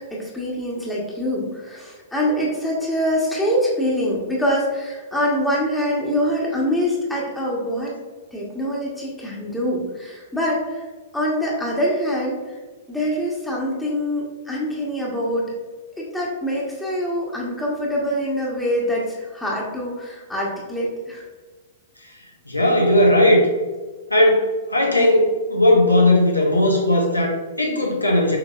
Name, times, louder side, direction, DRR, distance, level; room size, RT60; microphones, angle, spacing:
voice 1, 0.1-7.9 8.3-10.8 11.1-12.4 12.9-15.5 16.0-21.2, equal, 5° left, -5 dB, 1.1 m, -24 dB
voice 2, 22.5-23.5 24.1-28.4, left 1 dB, 90° left, 0 dB, 0.9 m, -17 dB
6.2 x 3.3 x 2.4 m, 1.3 s
figure-of-eight pair, 105°, 0 cm